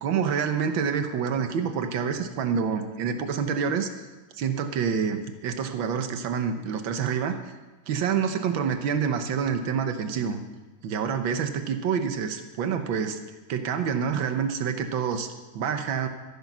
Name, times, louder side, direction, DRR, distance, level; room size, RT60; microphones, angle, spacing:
voice 1, 0.0-3.9 4.3-7.4 7.9-10.4 10.8-13.2 13.5-16.1, right 7 dB, 80° right, 8 dB, 1.8 m, -27 dB
15.0 x 9.5 x 6.1 m, 1.2 s
omnidirectional pair, 2.1 m